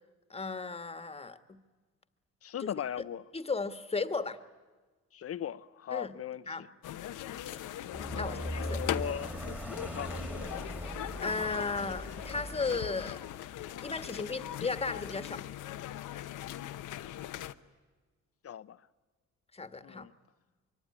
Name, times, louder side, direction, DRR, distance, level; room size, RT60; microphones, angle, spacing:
voice 1, 0.3-1.6 2.6-2.7 3.3-4.4 5.9-6.1 6.5-6.6 7.5-7.7 8.1-8.8 11.2-13.2 13.8-15.4 19.5-20.1, left 4 dB, 20° left, 1.6 m, -35 dB
voice 2, 2.4-3.2 5.1-6.7 8.1-9.3 9.9-10.4 18.4-18.8 19.8-20.1, left 9 dB, 50° left, 0.8 m, -39 dB
sound 1, 6.8-17.5, left 12 dB, 85° left, 1.0 m, -40 dB
sound 2, 7.9-13.1, equal, 5° right, 2.3 m, -40 dB
24.5 x 23.5 x 9.9 m
cardioid pair, 90°, 30 cm